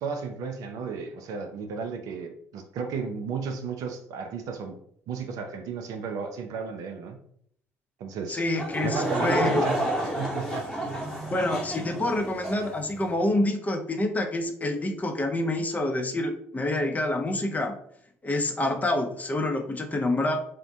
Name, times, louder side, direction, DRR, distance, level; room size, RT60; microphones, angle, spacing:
voice 1, 0.0-4.8 5.1-7.2 8.0-8.4 8.8-9.9 10.2-11.0, right 5 dB, 55° right, 0.4 m, -34 dB
voice 2, 8.3-9.7 11.3-17.8 18.2-20.4, left 1 dB, 20° left, 0.5 m, -27 dB
Laughter / Crowd, 8.6-12.8, right 1 dB, ahead, 1.0 m, -30 dB
2.5 x 2.1 x 3.8 m
figure-of-eight pair, 55°, 7 cm